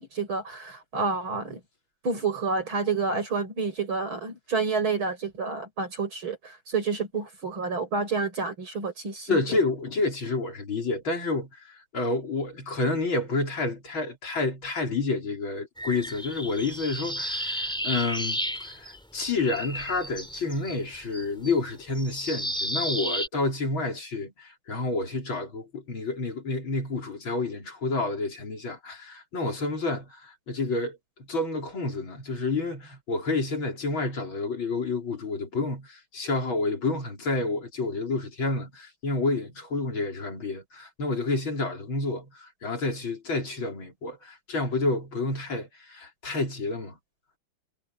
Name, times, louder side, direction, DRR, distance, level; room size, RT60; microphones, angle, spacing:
voice 1, 0.0-1.6 2.0-9.4, right 4 dB, 80° right, 7.5 m, -29 dB
voice 2, 9.3-31.0 31.3-47.0, left 3 dB, 75° left, 5.1 m, -29 dB
sound 1, 15.8-19.2 19.4-23.3, equal, ahead, 3.5 m, -33 dB
omnidirectional pair, 2.2 m